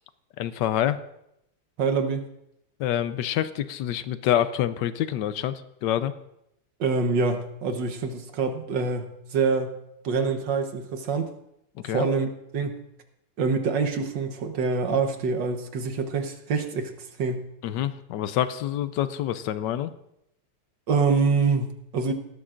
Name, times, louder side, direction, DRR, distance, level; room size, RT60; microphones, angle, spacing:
voice 1, 0.4-1.0 2.8-6.1 11.8-12.1 17.6-19.9, left 11 dB, 75° left, 12 dB, 1.1 m, -26 dB
voice 2, 1.8-2.3 6.8-9.1 9.3-9.8 10.0-11.3 11.9-12.8 13.4-17.5 20.9-22.1, right 4 dB, 60° right, 6 dB, 1.7 m, -25 dB
18.0 x 12.5 x 2.5 m, 0.79 s
omnidirectional pair, 2.3 m